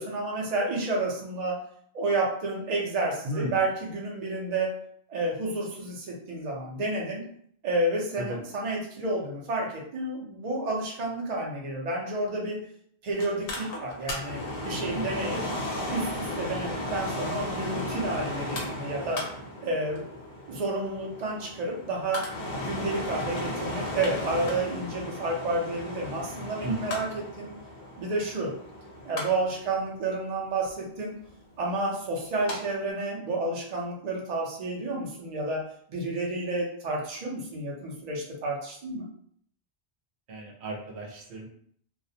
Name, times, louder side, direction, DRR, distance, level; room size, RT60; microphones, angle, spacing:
voice 1, 0.0-1.6 1.9-4.8 5.1-7.2 7.6-12.6 13.0-15.4 15.9-19.2 19.6-20.1 20.5-22.3 22.6-27.6 28.0-28.5 29.0-31.2 31.6-35.6 35.9-39.0, right 2 dB, 50° right, -2 dB, 0.6 m, -30 dB
Mechanical fan, 13.2-32.6 32.9-33.0, left 1 dB, 65° left, 0.8 m, -35 dB
voice 2, 14.9-15.4 26.6-27.0 40.3-41.5, right 1 dB, 85° right, 1 dB, 0.8 m, -35 dB
2.3 x 2.0 x 2.6 m, 0.63 s
omnidirectional pair, 1.1 m